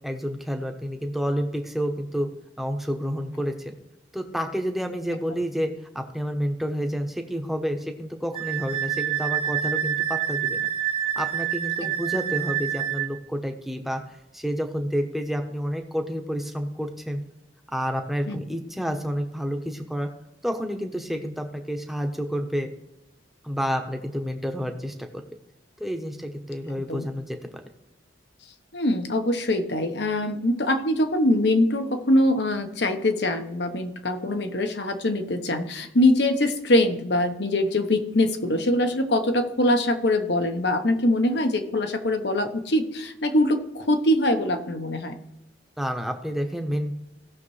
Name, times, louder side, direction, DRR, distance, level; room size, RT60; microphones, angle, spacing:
voice 1, 0.0-2.3 2.6-3.8 4.1-5.7 5.9-10.7 11.2-14.0 14.3-17.2 17.7-20.1 20.4-22.7 23.4-25.1 25.8-27.6 45.8-46.9, equal, ahead, 4 dB, 0.9 m, -29 dB
Wind instrument woodwind instrument, 8.3-13.1, right 10 dB, 30° right, 0.7 m, -27 dB
voice 2, 26.7-27.0 28.7-45.2, left 1 dB, 65° left, 7 dB, 1.1 m, -23 dB
17.0 x 6.6 x 3.3 m, 0.92 s
head